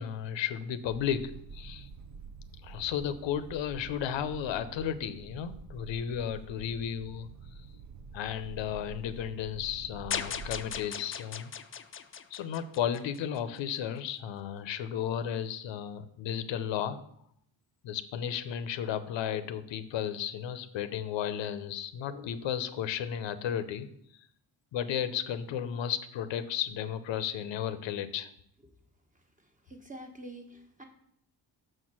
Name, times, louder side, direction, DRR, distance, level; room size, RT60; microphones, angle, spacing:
voice 1, 0.0-1.9 2.6-7.3 8.1-11.5 12.3-17.0 17.8-23.9 24.7-28.3, left 9 dB, 85° left, 12 dB, 0.7 m, -34 dB
sound 1, 0.9-10.8, right 4 dB, 45° right, 0.5 m, -47 dB
sound 2, 10.1-13.4, left 7 dB, 30° left, 0.4 m, -38 dB
voice 2, 29.7-30.8, right 1 dB, 15° right, 3 dB, 1.2 m, -46 dB
6.4 x 4.5 x 6.1 m, 0.71 s
cardioid pair, 110°, 44 cm